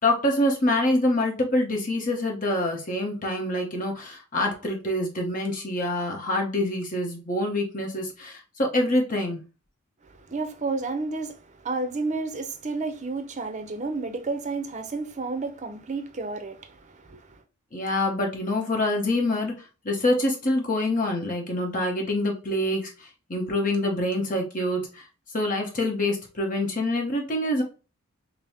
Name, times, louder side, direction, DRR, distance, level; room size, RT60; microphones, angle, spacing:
voice 1, 0.0-9.4 17.7-19.5 19.8-25.0 25.3-27.6, left 1 dB, 40° left, 0.9 m, -26 dB
voice 2, 10.0-17.4, right 3 dB, 35° right, 0.6 m, -31 dB
5.3 x 2.0 x 2.8 m
head